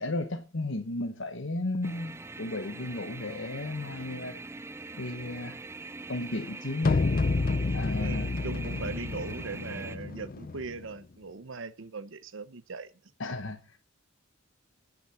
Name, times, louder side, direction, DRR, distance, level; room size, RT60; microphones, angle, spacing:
voice 1, 0.0-4.4 5.0-5.6 6.1-7.1 7.7-8.3 13.2-13.6, left 2 dB, 65° left, 1.2 m, -34 dB
sound 1, 1.8-10.0, right 3 dB, 15° right, 0.6 m, -43 dB
sound 2, 6.8-10.9, left 3 dB, 45° left, 0.5 m, -29 dB
voice 2, 8.0-12.9, right 4 dB, 65° right, 0.9 m, -39 dB
18.0 x 6.7 x 5.7 m
head